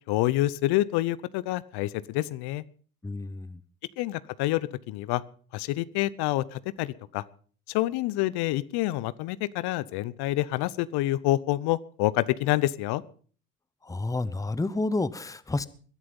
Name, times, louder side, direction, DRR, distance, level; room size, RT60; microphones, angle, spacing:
voice 1, 0.1-2.6 4.0-5.2 5.5-7.2 7.7-13.0, left 16 dB, 55° left, 19 dB, 0.9 m, -27 dB
voice 2, 3.0-3.6 13.8-15.7, left 2 dB, 5° left, 17 dB, 0.9 m, -30 dB
21.0 x 11.0 x 5.4 m, 0.43 s
hypercardioid pair, 75°, 46 cm